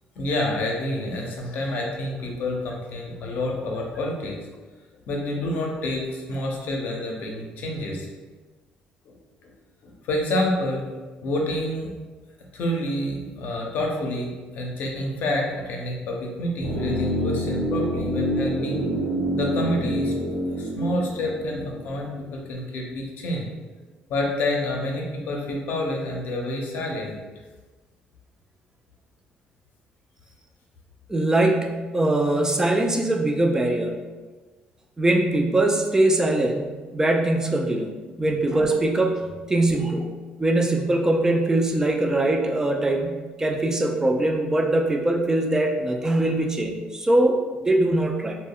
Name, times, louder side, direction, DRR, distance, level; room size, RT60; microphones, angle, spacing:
voice 1, 0.2-4.4 5.1-8.1 9.0-9.1 9.4-9.5 9.8-10.9 11.2-11.9 12.5-18.8 19.3-20.1 20.6-23.5 24.1-27.2, left 1 dB, 70° left, 0 dB, 0.6 m, -28 dB
sound 1, 16.6-22.6 22.9-23.0, equal, 75° right, 1.0 m, -27 dB
voice 2, 31.1-34.0 35.0-37.9 38.2-40.1 40.4-48.4, right 2 dB, 15° right, 2 dB, 0.4 m, -22 dB
2.1 x 2.1 x 3.7 m, 1.3 s
cardioid pair, 85°, 3 cm